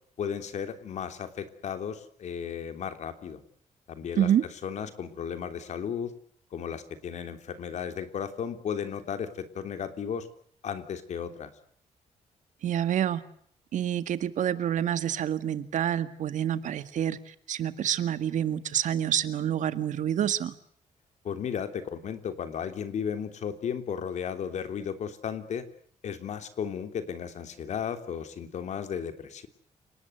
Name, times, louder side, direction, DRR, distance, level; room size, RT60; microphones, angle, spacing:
voice 1, 0.2-3.4 3.9-4.3 4.6-6.1 6.5-10.3 10.6-11.5 21.2-25.6 26.0-29.5, left 7 dB, 65° left, 9 dB, 3.2 m, -34 dB
voice 2, 12.6-13.2 13.7-20.5, right 10 dB, 70° right, 12 dB, 1.9 m, -27 dB
30.0 x 19.5 x 8.0 m, 0.63 s
cardioid pair, 145°, 13 cm